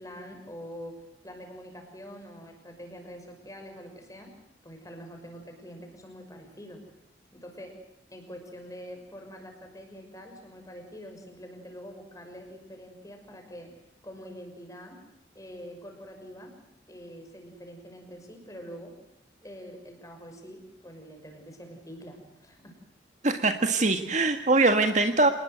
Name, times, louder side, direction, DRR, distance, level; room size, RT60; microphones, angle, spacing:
voice 1, 0.0-4.4 4.6-6.9 7.3-7.8 8.1-13.8 14.0-15.0 15.3-16.6 16.9-19.0 19.4-22.8, equal, 20° left, 4 dB, 5.9 m, -45 dB
voice 2, 23.2-25.3, right 3 dB, 40° right, 7 dB, 1.7 m, -22 dB
27.5 x 20.0 x 8.0 m, 0.80 s
head